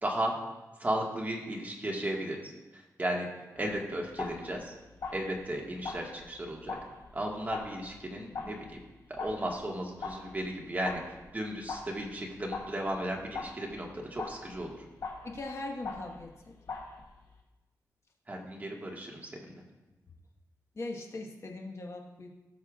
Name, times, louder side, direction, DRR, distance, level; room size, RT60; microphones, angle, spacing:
voice 1, 0.0-0.3 0.8-2.5 3.0-3.3 3.5-4.7 5.1-6.8 7.1-8.6 9.1-11.0 11.3-14.7 18.3-19.3, right 1 dB, 25° right, -1 dB, 1.6 m, -35 dB
sound 1, 3.6-17.4, left 4 dB, 70° left, 1.6 m, -43 dB
voice 2, 15.2-16.6 20.7-22.3, left 2 dB, 45° left, 1 dB, 1.3 m, -40 dB
17.5 x 6.6 x 2.4 m, 1.1 s
wide cardioid pair, 120°, 7 cm